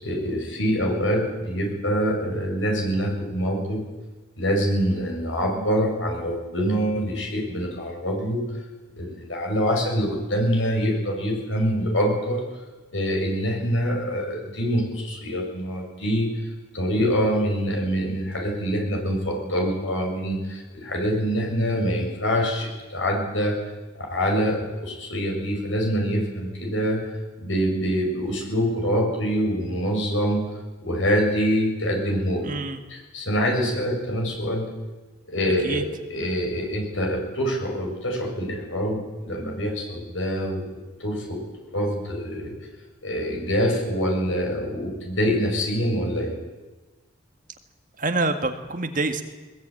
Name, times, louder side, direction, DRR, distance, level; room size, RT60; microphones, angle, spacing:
voice 1, 0.0-3.8 4.4-8.4 9.0-12.4 12.9-16.3 16.7-23.6 24.0-27.0 27.4-30.4 30.8-32.5 32.9-34.7 35.3-41.4 41.7-42.6 43.0-46.4, equal, 85° left, 1 dB, 7.2 m, -25 dB
voice 2, 32.4-32.8 35.5-35.8 48.0-49.2, right 3 dB, 40° right, 6 dB, 1.8 m, -26 dB
21.0 x 20.5 x 9.1 m, 1.2 s
head